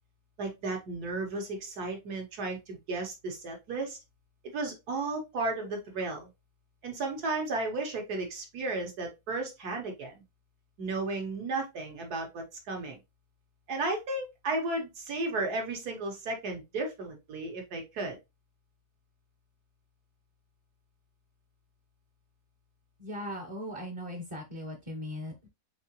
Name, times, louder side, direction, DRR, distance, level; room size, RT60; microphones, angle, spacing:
voice 1, 0.4-4.0 4.5-6.3 6.8-10.2 10.8-13.0 13.7-18.2, right 2 dB, 85° right, 2 dB, 1.8 m, -34 dB
voice 2, 23.0-25.5, equal, 35° right, 3 dB, 0.5 m, -39 dB
4.1 x 3.8 x 2.9 m, 0.23 s
omnidirectional pair, 1.6 m